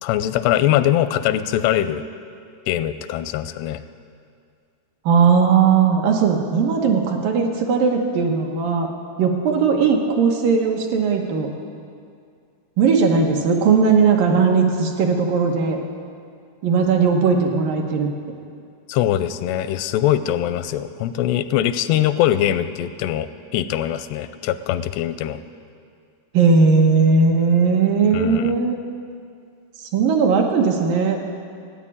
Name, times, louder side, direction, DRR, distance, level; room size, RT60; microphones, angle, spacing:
voice 1, 0.0-2.0 2.7-3.8 18.9-23.3 23.5-25.4 28.1-28.6, left 12 dB, 90° left, 12 dB, 2.7 m, -22 dB
voice 2, 5.1-8.9 9.2-11.5 12.8-15.8 16.6-18.1 26.3-28.7 29.9-31.2, right 5 dB, 70° right, 2 dB, 2.5 m, -18 dB
15.5 x 9.8 x 8.7 m, 2.3 s
omnidirectional pair, 4.7 m